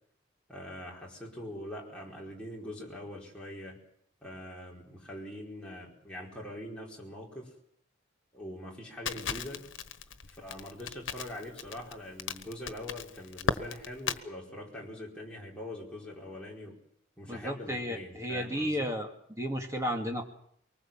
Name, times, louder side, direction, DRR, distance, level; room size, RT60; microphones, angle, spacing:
voice 1, 0.5-3.8 4.2-7.5 8.3-9.7 10.3-16.8 17.2-18.9, left 1 dB, 5° left, -4 dB, 4.7 m, -43 dB
Crackle, 9.1-14.2, left 5 dB, 90° left, 1.3 m, -36 dB
voice 2, 17.3-20.3, equal, 15° right, 2 dB, 2.4 m, -33 dB
24.0 x 19.5 x 7.4 m, 0.68 s
head